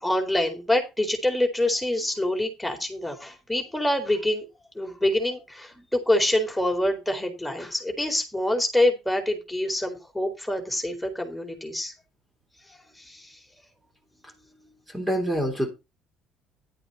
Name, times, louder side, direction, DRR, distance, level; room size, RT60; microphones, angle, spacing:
voice 1, 0.0-4.4 4.8-11.9 13.1-13.2, left 1 dB, 5° left, 4.3 m, -26 dB
voice 2, 14.9-15.7, equal, 15° right, 3.7 m, -26 dB
11.5 x 8.7 x 4.2 m
hypercardioid pair, 55°, 0 cm